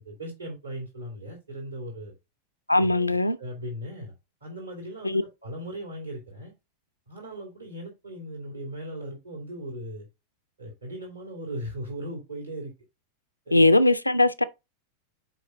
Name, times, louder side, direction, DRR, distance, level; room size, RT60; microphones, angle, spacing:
voice 1, 0.0-2.1 2.8-4.1 4.4-6.5 7.1-10.1 10.6-12.7 13.5-13.7, equal, 80° right, 2.6 m, -38 dB
voice 2, 2.7-3.4 5.0-5.2 13.5-14.4, left 2 dB, 85° left, 0.5 m, -20 dB
6.3 x 4.9 x 3.8 m
figure-of-eight pair, 90°, 0 cm